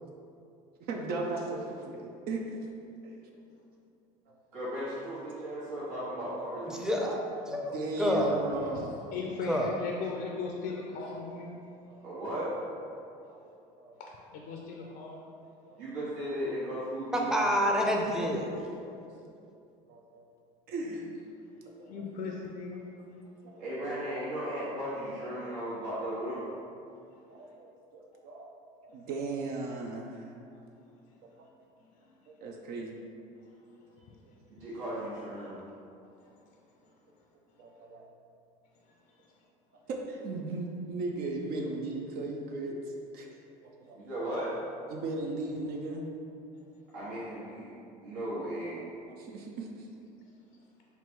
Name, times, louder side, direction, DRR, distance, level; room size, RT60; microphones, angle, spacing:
voice 1, 0.9-2.6 3.0-3.2 7.5-9.0 11.8-12.1 13.3-13.4 13.8-14.0 14.8-14.9 15.7-15.8 19.9-20.3 20.7-21.0 21.8-21.9 23.4-23.6 27.3-28.5 28.8-30.3 32.3-33.0 37.6-38.1 39.9-42.8 43.1-43.3 43.6-44.0 44.9-46.0 48.8-49.9, right 2 dB, 60° right, 0 dB, 0.5 m, -37 dB
voice 2, 4.5-7.1 12.0-12.5 15.8-17.3 23.6-26.5 34.5-35.6 43.9-44.5 46.9-47.7 48.0-48.8, equal, 80° right, -10 dB, 1.2 m, -36 dB
voice 3, 6.7-8.3 9.5-9.7 17.1-18.5, equal, 5° right, 0 dB, 0.6 m, -28 dB
voice 4, 8.7-11.6 14.0-15.2 18.2-18.3 19.1-19.2 20.8-21.0 21.8-22.9 23.4-23.6 27.1-27.5 28.9-29.0 30.8-31.2 32.2-32.3 33.3-33.5 33.9-34.1 36.2-36.6 39.2-39.3, left 4 dB, 60° left, -1 dB, 0.5 m, -40 dB
3.9 x 2.3 x 4.5 m, 2.6 s
supercardioid pair, 85°, 18 cm